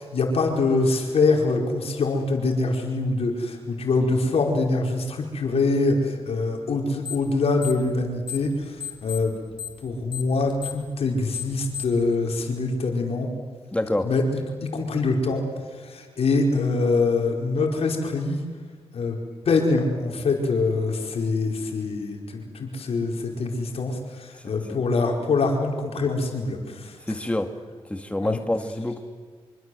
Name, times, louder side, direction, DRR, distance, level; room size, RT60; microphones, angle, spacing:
voice 1, 0.0-9.3 9.8-13.3 14.0-15.4 15.7-18.4 18.9-19.2 19.4-27.0 28.2-28.4, left 3 dB, 70° left, 2 dB, 4.9 m, -24 dB
sound 1, 7.0-7.3 7.6-8.5 8.8-12.0, left 8 dB, 45° left, 6.1 m, -34 dB
voice 2, 13.7-14.1 27.1-27.5 27.9-29.0, left 1 dB, 10° left, 6 dB, 2.2 m, -26 dB
26.0 x 25.5 x 7.9 m, 1.5 s
cardioid pair, 55°, 11 cm